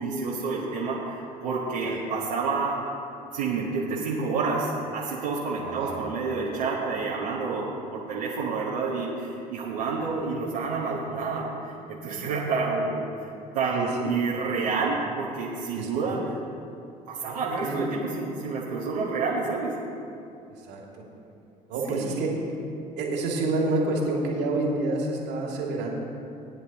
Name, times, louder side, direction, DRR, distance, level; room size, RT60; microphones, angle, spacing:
voice 1, 0.0-2.7 3.3-16.2 17.1-19.8 21.9-22.2, right 4 dB, 75° right, -7 dB, 1.5 m, -29 dB
voice 2, 5.6-6.1 10.0-10.1 13.7-14.1 15.7-16.0 17.2-17.4 17.6-17.8 20.7-21.0 21.7-22.4 23.0-25.9, right 2 dB, 60° right, -1 dB, 2.5 m, -28 dB
20.0 x 10.0 x 3.0 m, 2.7 s
hypercardioid pair, 60°, 20 cm